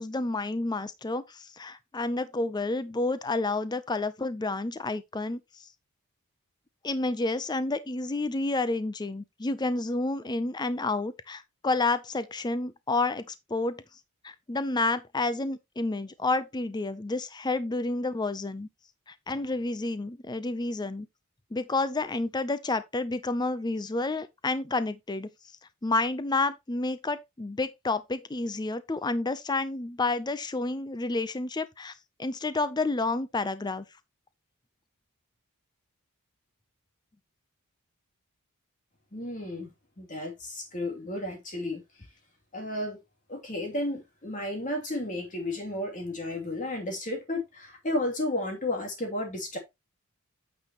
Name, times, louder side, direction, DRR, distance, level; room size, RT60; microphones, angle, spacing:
voice 1, 0.0-5.7 6.8-13.8 14.2-18.7 19.1-21.1 21.5-25.3 25.8-31.9 32.2-33.8, left 2 dB, 20° left, 0.5 m, -30 dB
voice 2, 39.1-39.7 40.0-41.8 42.5-43.0 43.3-49.6, left 1 dB, 35° left, 2.7 m, -33 dB
8.9 x 6.1 x 3.0 m
head